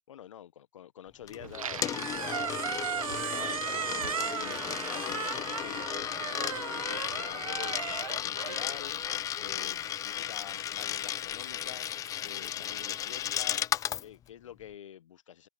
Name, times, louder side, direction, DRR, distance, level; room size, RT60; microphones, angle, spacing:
voice 1, 0.1-2.5 3.0-4.6 4.9-9.0 9.4-11.9 12.2-13.7 14.0-15.5, left 10 dB, 65° left, 1.5 m, -47 dB
Coin (dropping), 1.3-14.0, left 11 dB, 20° left, 0.8 m, -35 dB
Squeak, 1.4-9.7, right 8 dB, 80° right, 0.6 m, -36 dB
sound 1, 3.9-13.8, right 16 dB, 50° right, 5.0 m, -64 dB
hypercardioid pair, 125°, 18 cm